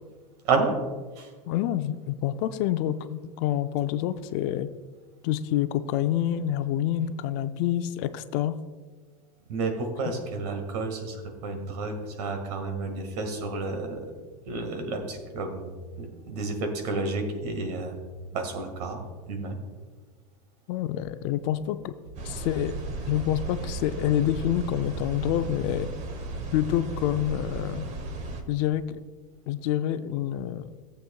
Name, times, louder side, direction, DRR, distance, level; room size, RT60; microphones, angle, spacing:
voice 1, 1.5-4.7 5.2-8.6 10.0-10.2 20.7-21.9 22.2-22.7 23.1-25.9 26.5-27.9 28.5-29.0 29.5-30.7, left 11 dB, 50° left, 12 dB, 0.5 m, -27 dB
voice 2, 9.5-14.1 14.5-18.0 18.3-19.0 19.3-19.6, right 3 dB, 75° right, 5 dB, 1.8 m, -31 dB
sound 1, 22.2-28.4, right 2 dB, 35° right, 1.1 m, -35 dB
14.5 x 7.8 x 2.3 m, 1.4 s
supercardioid pair, 130°, 20 cm